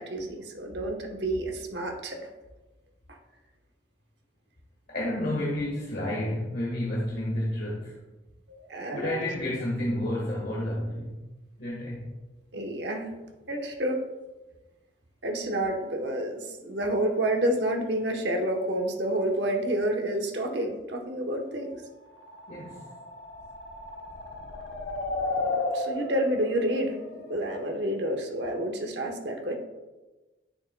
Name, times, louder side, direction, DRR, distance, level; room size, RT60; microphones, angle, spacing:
voice 1, 0.0-2.3 3.1-3.2 8.5-9.2 12.5-13.1 13.5-14.0 15.2-21.8 25.7-29.5, right 1 dB, 65° right, 3 dB, 1.0 m, -29 dB
voice 2, 4.9-7.9 8.9-11.1 11.6-12.1 22.5-22.9, left 1 dB, 50° left, -4 dB, 1.3 m, -30 dB
sound 1, 22.2-28.0, left 2 dB, 70° left, 0.9 m, -34 dB
10.0 x 6.8 x 2.2 m, 1.1 s
head